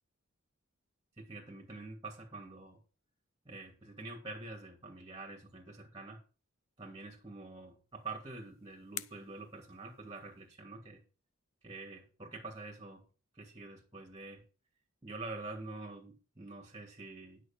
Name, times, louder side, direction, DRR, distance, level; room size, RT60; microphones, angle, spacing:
voice 1, 1.2-2.8 3.4-6.2 6.8-11.0 11.6-13.0 13.3-14.4 15.0-17.4, right 3 dB, 20° right, 2.6 m, -46 dB
sound 1, 7.9-10.6, left 13 dB, 65° left, 0.5 m, -50 dB
9.9 x 6.3 x 6.0 m
head